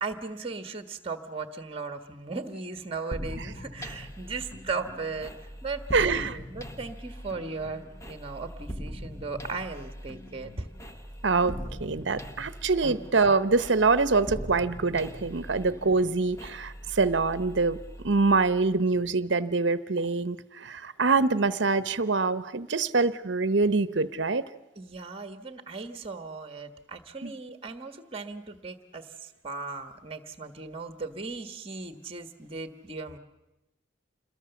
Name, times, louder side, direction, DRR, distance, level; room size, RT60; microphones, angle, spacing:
voice 1, 0.0-10.7 11.4-12.2 12.8-12.9 24.7-33.2, right 4 dB, 30° right, 9 dB, 1.4 m, -37 dB
sound 1, 3.1-18.7, equal, 15° left, 1.0 m, -41 dB
voice 2, 5.9-6.3 11.2-17.8 18.0-24.5 27.2-27.3, right 3 dB, 65° right, 15 dB, 0.9 m, -25 dB
27.5 x 21.5 x 7.1 m, 0.98 s
head